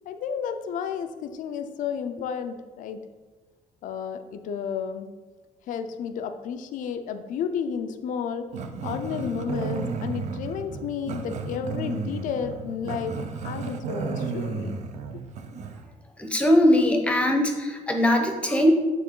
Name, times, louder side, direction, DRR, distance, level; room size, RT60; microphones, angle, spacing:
voice 1, 0.1-3.0 3.8-5.1 5.7-8.5 8.8-13.2 13.4-14.8, left 7 dB, 70° left, 9 dB, 0.5 m, -32 dB
Growling, 8.5-15.8, right 5 dB, 55° right, 0.6 m, -33 dB
voice 2, 16.2-18.7, left 1 dB, 10° left, 3 dB, 0.8 m, -20 dB
9.2 x 3.6 x 3.7 m, 1.3 s
cardioid pair, 165°, 14 cm